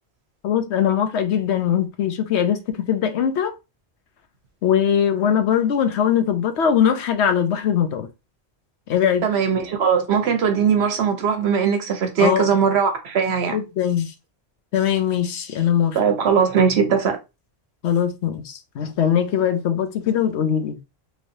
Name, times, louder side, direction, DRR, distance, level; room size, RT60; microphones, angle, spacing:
voice 1, 0.4-3.5 4.6-8.1 8.9-9.2 12.2-12.6 13.5-14.1 14.7-16.0 17.8-20.8, left 8 dB, 75° left, 0.9 m, -21 dB
voice 2, 9.2-13.6 15.9-17.2, right 7 dB, 70° right, 1.0 m, -20 dB
3.1 x 3.0 x 2.6 m
omnidirectional pair, 1.1 m